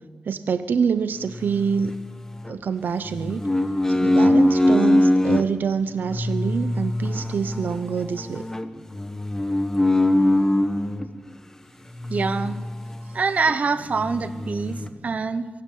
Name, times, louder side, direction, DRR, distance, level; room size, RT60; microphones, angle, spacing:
voice 1, 0.3-1.9 2.5-3.4 3.9-8.5, right 6 dB, 65° right, 12 dB, 0.7 m, -26 dB
sound 1, 1.3-2.5 3.0-5.5 6.0-11.1 11.9-13.1 13.5-13.6 13.9-14.9, left 1 dB, 15° left, 1.1 m, -23 dB
voice 2, 12.1-12.6 13.1-15.5, right 4 dB, 45° right, 13 dB, 1.0 m, -25 dB
24.0 x 12.5 x 9.1 m, 1.5 s
wide cardioid pair, 165°, 3 cm